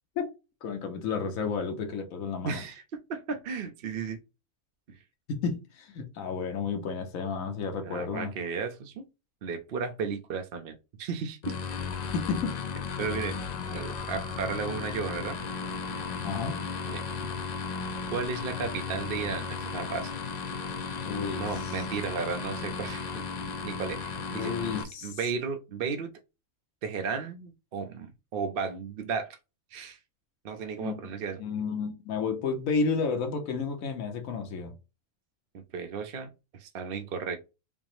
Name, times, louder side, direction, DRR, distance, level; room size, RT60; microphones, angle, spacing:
voice 1, 0.6-2.6 5.3-8.3 12.1-12.6 16.2-16.6 21.1-21.7 24.3-25.1 30.8-30.9 31.4-34.7, left 5 dB, 85° left, 1.2 m, -31 dB
voice 2, 2.4-2.8 3.1-4.2 4.9-5.0 7.8-9.1 9.4-11.5 12.0-12.1 13.0-13.4 13.7-15.4 16.9-17.0 18.1-20.1 21.4-23.2 23.6-24.5 25.0-26.1 26.8-29.4 29.7-30.0 30.4-31.4 35.5-37.4, right 5 dB, 55° right, 0.6 m, -34 dB
sound 1, 11.4-24.8, left 5 dB, 60° left, 0.4 m, -35 dB
5.4 x 2.0 x 3.0 m
omnidirectional pair, 1.4 m